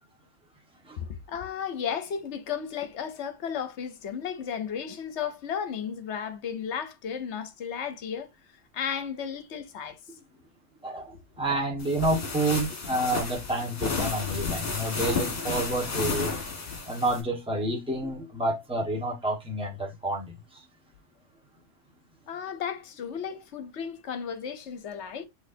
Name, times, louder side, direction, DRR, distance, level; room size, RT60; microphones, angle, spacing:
voice 1, 1.0-8.3 8.7-10.0 22.3-25.2, left 7 dB, 70° left, 1.0 m, -34 dB
voice 2, 10.8-16.3 16.9-20.6, right 1 dB, 5° right, 1.3 m, -29 dB
sound 1, 11.8-17.2, left 4 dB, 50° left, 1.6 m, -32 dB
6.3 x 3.1 x 2.7 m
omnidirectional pair, 1.3 m